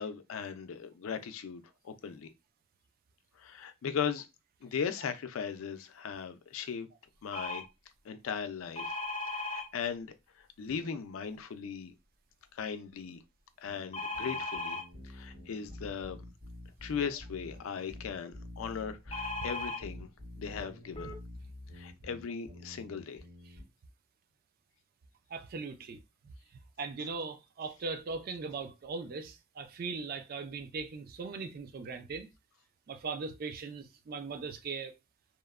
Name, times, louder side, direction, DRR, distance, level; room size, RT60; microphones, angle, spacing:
voice 1, 0.0-2.3 3.4-4.3 4.6-6.9 7.2-7.6 8.0-9.0 9.3-11.9 12.5-13.2 13.6-16.2 16.8-20.1 20.4-21.1 21.7-23.2, left 6 dB, 85° left, 0.4 m, -38 dB
sound 1, 7.3-7.6 8.8-9.6 13.9-14.8 19.1-19.8 20.6-20.7 21.0-21.2, left 2 dB, 30° left, 0.5 m, -36 dB
sound 2, 13.6-23.6, left 1 dB, 65° right, 1.7 m, -48 dB
voice 2, 25.3-26.0 26.2-26.3 26.8-32.3 32.9-34.9, right 4 dB, 45° right, 0.3 m, -39 dB
2.9 x 2.0 x 2.3 m
head